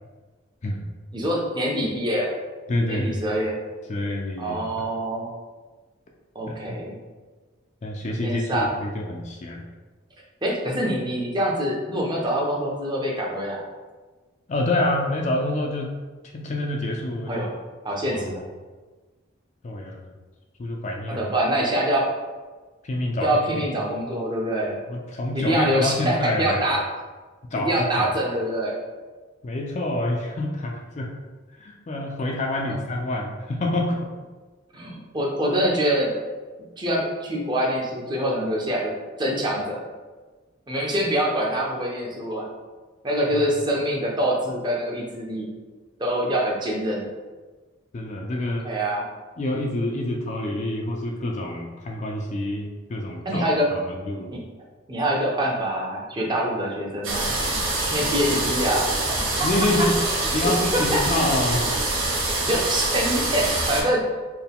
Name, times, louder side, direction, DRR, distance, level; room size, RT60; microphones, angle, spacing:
voice 1, 1.1-2.3 2.9-3.6 4.4-5.3 6.3-7.0 8.2-8.7 10.4-13.6 17.3-17.6 17.8-18.4 21.1-22.1 23.2-24.8 25.3-26.8 27.6-28.8 32.7-32.8 34.7-36.1 36.8-38.9 39.2-39.8 40.7-42.5 43.0-45.5 46.0-47.1 48.6-49.0 53.2-53.7 54.3-54.4 54.9-57.3 57.9-59.0 60.4-60.5 60.9-61.3 62.5-64.1, right 1 dB, 20° right, -2 dB, 0.6 m, -25 dB
voice 2, 2.7-3.2 3.9-4.8 6.5-6.8 7.8-9.6 14.5-15.9 16.3-17.4 18.1-18.5 19.6-20.1 20.6-21.3 22.8-23.6 24.9-26.7 27.5-28.1 29.4-31.1 31.6-34.1 43.3-43.4 47.9-48.7 49.4-53.4 53.8-54.3 59.4-60.0 60.3-61.6, left 1 dB, 35° left, 1 dB, 0.3 m, -27 dB
sound 1, 57.0-63.8, right 2 dB, 85° right, 1.0 m, -25 dB
4.4 x 2.2 x 3.5 m, 1.3 s
head